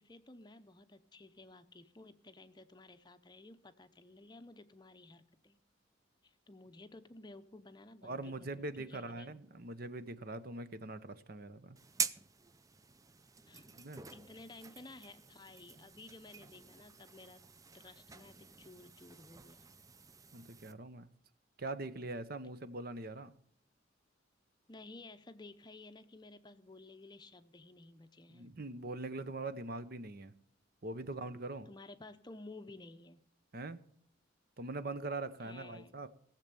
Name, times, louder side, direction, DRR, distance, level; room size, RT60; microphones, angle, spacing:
voice 1, 0.0-5.6 6.2-9.4 13.5-13.8 14.1-17.4 17.7-19.7 24.7-28.5 31.1-31.2 31.7-33.2 35.4-36.0, left 2 dB, 20° left, 0.7 m, -54 dB
voice 2, 8.0-11.8 13.7-14.0 20.3-21.1 21.6-23.3 28.3-30.3 30.8-31.7 33.5-33.8 34.6-36.1, right 2 dB, 50° right, 0.8 m, -42 dB
sound 1, 11.8-20.7, right 5 dB, 15° right, 0.5 m, -46 dB
17.5 x 7.5 x 6.9 m
head